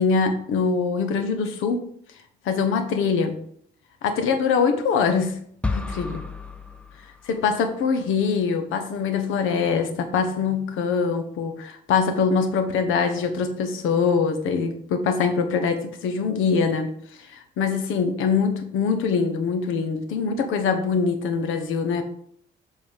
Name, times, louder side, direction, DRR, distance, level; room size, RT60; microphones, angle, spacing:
voice 1, 0.0-1.9 2.4-3.4 4.0-5.4 5.7-6.2 7.3-16.9 17.3-22.0, left 5 dB, 90° left, 7 dB, 1.2 m, -23 dB
sound 1, 5.6-7.7, left 3 dB, 5° left, 0.7 m, -32 dB
7.4 x 4.2 x 5.3 m, 0.63 s
cardioid pair, 90°, 20 cm